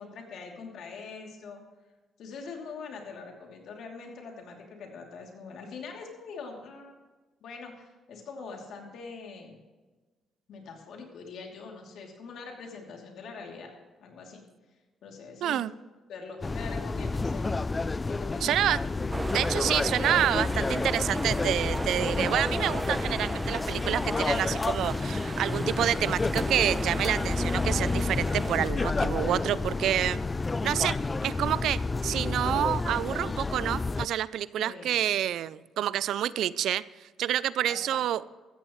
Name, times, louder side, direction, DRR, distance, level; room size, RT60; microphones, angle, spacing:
voice 1, 0.0-1.6 2.2-7.0 7.4-9.6 10.5-13.7 14.0-14.4 15.0-15.8 16.1-17.6 18.0-18.7 34.6-35.0 37.7-38.0, left 4 dB, 75° left, 1 dB, 2.9 m, -43 dB
voice 2, 15.4-15.7 18.4-18.8 19.3-30.2 30.6-31.0 31.2-38.2, right 11 dB, 75° right, 18 dB, 0.3 m, -28 dB
sound 1, 16.4-34.1, left 3 dB, 25° left, 0.3 m, -30 dB
sound 2, 19.1-28.6, right 2 dB, 15° right, 0.7 m, -36 dB
14.5 x 14.5 x 3.2 m, 1.3 s
cardioid pair, 90°, 0 cm